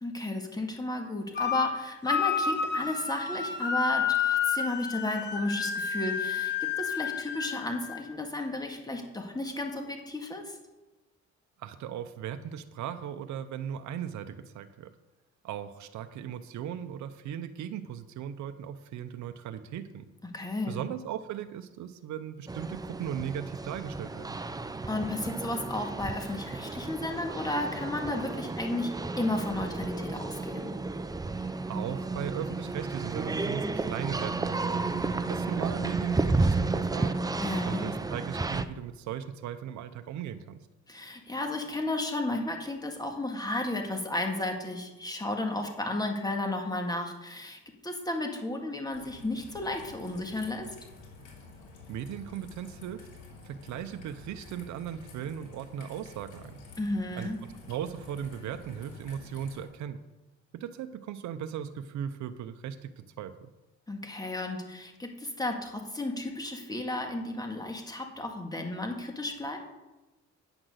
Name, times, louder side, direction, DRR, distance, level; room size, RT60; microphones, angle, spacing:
voice 1, 0.0-10.6 20.3-20.8 24.9-30.7 37.4-37.9 40.9-50.7 56.8-57.4 63.9-69.6, left 2 dB, 15° left, 3 dB, 1.8 m, -33 dB
sound 1, 1.4-1.7 2.1-8.1, left 7 dB, 35° left, 1.2 m, -30 dB
voice 2, 11.6-14.9 15.4-20.1 20.7-24.4 31.6-34.9 35.3-37.2 37.6-40.6 51.9-53.1 53.4-56.5 57.1-57.3 57.7-60.0 60.5-63.5, right 9 dB, 70° right, 9 dB, 0.7 m, -37 dB
sound 2, 22.5-38.6, right 3 dB, 15° right, 0.5 m, -32 dB
Raindrop / Trickle dribble, 48.9-59.6, left 3 dB, 80° left, 2.8 m, -50 dB
8.9 x 6.0 x 6.4 m, 1.1 s
cardioid pair, 90°, 30 cm